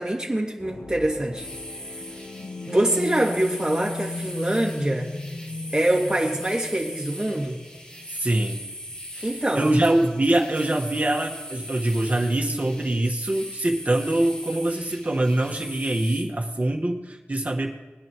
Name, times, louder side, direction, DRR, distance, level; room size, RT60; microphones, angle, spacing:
voice 1, 0.0-1.4 2.7-5.1 5.7-7.6 9.2-9.7, right 1 dB, 20° right, -1 dB, 2.4 m, -24 dB
sound 1, 0.6-8.3, left 2 dB, 65° left, 1.0 m, -36 dB
sound 2, 1.4-16.2, equal, 20° left, 1.6 m, -40 dB
voice 2, 8.1-8.6 9.2-9.3 9.5-17.8, right 1 dB, 40° right, 0 dB, 1.5 m, -24 dB
21.0 x 10.5 x 3.1 m, 1.2 s
wide cardioid pair, 65°, 4 cm